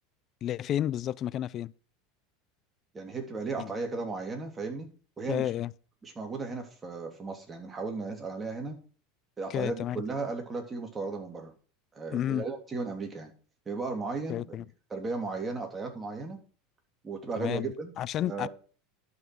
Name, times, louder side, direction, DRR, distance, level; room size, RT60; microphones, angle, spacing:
voice 1, 0.4-1.7 3.6-3.7 5.3-5.7 9.5-10.0 12.1-12.4 14.3-14.6 17.4-18.5, left 11 dB, 45° left, 0.4 m, -31 dB
voice 2, 2.9-4.9 5.2-5.5 6.0-8.8 9.4-11.5 11.9-13.3 13.6-14.6 14.9-16.4 17.0-17.9 18.3-18.5, right 3 dB, 20° right, 3.1 m, -35 dB
11.0 x 5.8 x 6.1 m
hypercardioid pair, 90°, 0 cm